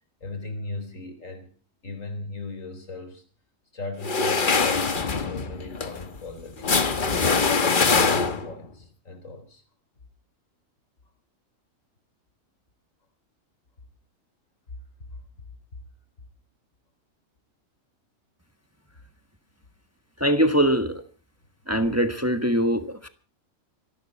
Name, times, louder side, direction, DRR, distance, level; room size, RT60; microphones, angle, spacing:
voice 1, 0.2-1.5 1.8-3.2 3.7-7.0 7.5-9.6 15.1-15.5, left 3 dB, 90° left, 7 dB, 4.3 m, -38 dB
sound 1, 4.0-8.6, left 4 dB, 40° left, 1.4 m, -23 dB
voice 2, 20.2-21.0 21.7-23.1, equal, 10° right, 8 dB, 1.3 m, -22 dB
26.0 x 12.0 x 4.2 m, 0.37 s
omnidirectional pair, 1.3 m